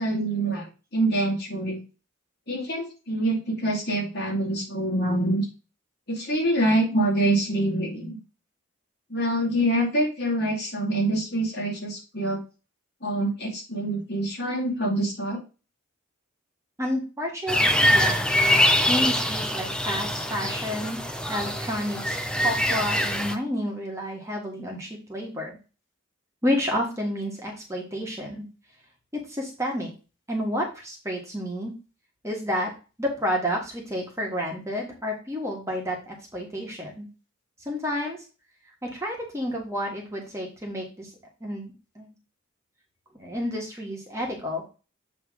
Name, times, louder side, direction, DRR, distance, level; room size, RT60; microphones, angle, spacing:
voice 1, 0.0-1.8 2.5-5.4 6.1-8.2 9.1-12.4 13.0-15.4, right 1 dB, 50° left, -2 dB, 2.6 m, -25 dB
voice 2, 16.8-18.3 18.9-21.0 21.3-25.6 26.4-28.4 29.1-29.9 30.3-31.7 32.2-32.7 33.0-37.1 37.6-38.2 38.8-41.1 41.4-42.1 43.1-44.6, equal, 15° right, 0 dB, 1.4 m, -30 dB
sound 1, 17.5-23.3, left 1 dB, 5° left, 0.4 m, -24 dB
7.9 x 3.2 x 4.8 m, 0.32 s
head